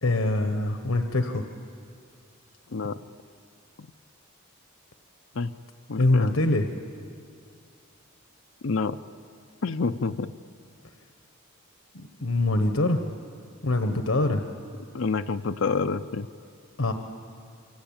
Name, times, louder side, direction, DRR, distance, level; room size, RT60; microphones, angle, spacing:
voice 1, 0.0-1.4 6.0-6.7 11.9-13.0 13.6-14.4 16.8-16.9, left 2 dB, 80° left, 6 dB, 1.2 m, -24 dB
voice 2, 5.9-6.3 8.6-9.0 9.6-10.3 14.9-16.3, left 4 dB, 65° left, 8 dB, 0.6 m, -28 dB
27.0 x 23.5 x 8.9 m, 2.3 s
head